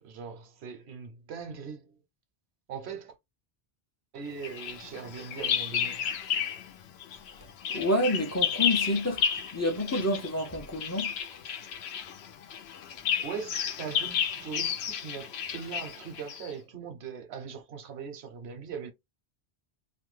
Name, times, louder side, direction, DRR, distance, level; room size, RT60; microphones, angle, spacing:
voice 1, 0.0-2.0 2.7-3.1 4.1-6.0 13.2-18.9, right 6 dB, 85° right, 1.0 m, -40 dB
Bird vocalization bird call bird song, 4.4-6.7 7.0-16.5, left 8 dB, 85° left, 0.8 m, -32 dB
voice 2, 7.7-9.2 9.5-11.1, left 1 dB, 25° left, 0.3 m, -28 dB
2.5 x 2.2 x 3.1 m
omnidirectional pair, 1.1 m